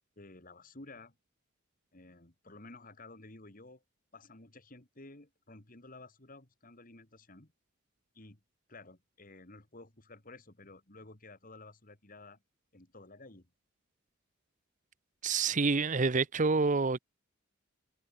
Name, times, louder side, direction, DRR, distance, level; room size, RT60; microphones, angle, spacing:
voice 1, 0.2-1.1 1.9-3.8 4.1-7.5 8.1-8.4 8.7-12.4 12.7-13.5, left 2 dB, 40° left, 2.6 m, -53 dB
voice 2, 15.2-17.0, right 4 dB, 40° right, 0.7 m, -27 dB
head